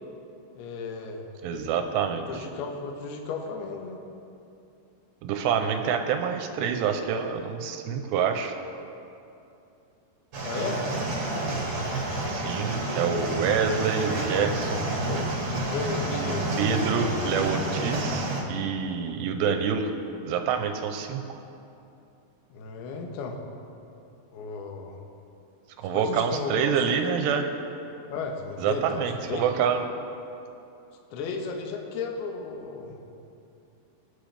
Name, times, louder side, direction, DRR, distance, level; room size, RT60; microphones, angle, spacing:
voice 1, 0.6-1.3 2.3-4.0 10.4-10.8 15.1-16.7 22.5-23.4 24.3-25.0 25.9-26.5 26.9-27.0 28.1-29.4 31.1-33.0, left 4 dB, 70° left, 1 dB, 2.9 m, -34 dB
voice 2, 1.4-2.4 5.2-8.5 12.3-14.9 16.1-19.9 20.3-21.4 25.8-27.5 28.6-29.8, right 7 dB, 85° right, 6 dB, 2.7 m, -27 dB
sound 1, 10.3-18.4, right 1 dB, 55° right, 1.6 m, -29 dB
21.5 x 9.8 x 3.4 m, 2.7 s
omnidirectional pair, 5.2 m